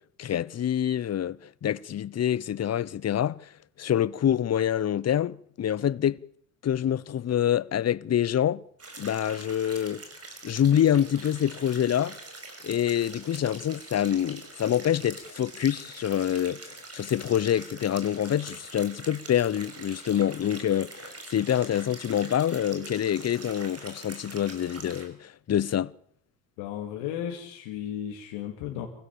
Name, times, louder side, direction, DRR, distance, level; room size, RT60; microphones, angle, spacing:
voice 1, 0.2-3.5 3.8-6.2 6.6-8.6 9.0-10.0 10.4-12.2 12.6-25.9, left 10 dB, 30° left, 0.7 m, -26 dB
sound 1, 8.8-25.1, right 3 dB, 30° right, 6.4 m, -44 dB
voice 2, 26.6-28.9, left 10 dB, 75° left, 2.6 m, -34 dB
26.0 x 15.5 x 7.2 m
hypercardioid pair, 65°, 49 cm